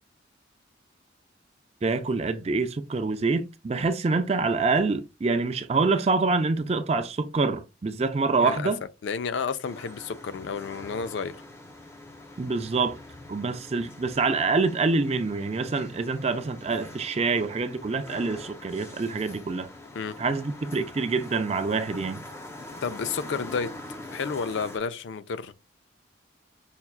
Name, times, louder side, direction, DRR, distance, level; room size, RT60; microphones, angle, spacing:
voice 1, 1.8-8.8 12.4-13.0 13.3-19.7 20.2-22.2, right 4 dB, 30° right, 0.4 m, -26 dB
voice 2, 8.3-8.7 9.0-11.4 20.0-20.2 22.8-25.5, left 5 dB, 70° left, 0.4 m, -31 dB
sound 1, 9.6-24.8, left 2 dB, 15° left, 0.5 m, -44 dB
5.6 x 2.3 x 2.3 m
head